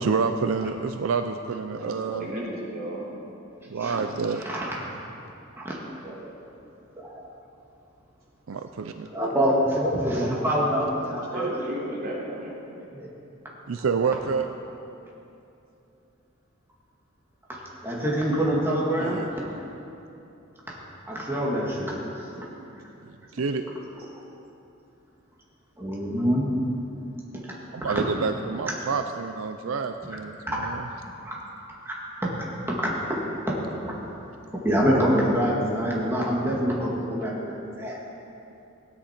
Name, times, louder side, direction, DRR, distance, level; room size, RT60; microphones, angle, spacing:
voice 1, 0.0-2.3 3.7-4.4 8.5-9.1 13.7-14.5 19.0-19.3 23.3-23.6 27.7-30.9, right 5 dB, 80° right, 8 dB, 0.5 m, -28 dB
voice 2, 1.7-3.1 11.2-12.6, right 1 dB, 45° right, -5 dB, 3.2 m, -34 dB
voice 3, 4.4-4.8 5.6-5.8 6.0-6.3 7.0-7.2 9.1-11.5 12.9-13.1 17.8-19.5 21.1-22.0 22.4-22.5 25.8-26.5 27.8-27.9 30.5-30.6 31.2-31.4 31.9-32.0 32.2-32.3 32.7-33.2 33.5-33.6 33.8-33.9 34.6-38.0, equal, 10° right, -5 dB, 1.9 m, -25 dB
17.0 x 9.9 x 4.4 m, 2.8 s
head